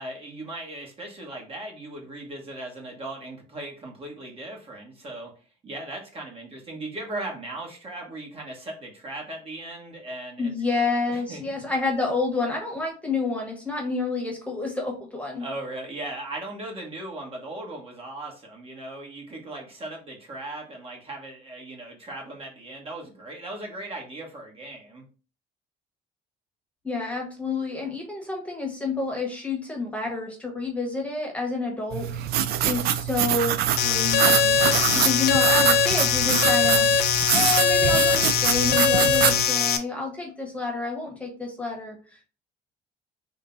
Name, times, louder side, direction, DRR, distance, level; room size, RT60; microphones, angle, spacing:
voice 1, 0.0-5.3 5.6-10.5 11.1-11.4 15.4-25.0, right 2 dB, 35° right, 0 dB, 1.4 m, -38 dB
voice 2, 10.4-15.5 26.8-32.1 32.6-36.9 37.3-42.3, left 3 dB, 10° left, 1 dB, 1.2 m, -29 dB
sound 1, 31.9-39.5, right 10 dB, 65° right, 0.4 m, -25 dB
sound 2, 33.8-39.8, left 7 dB, 70° left, 0.6 m, -21 dB
3.7 x 2.3 x 3.9 m, 0.35 s
cardioid pair, 110°, 17 cm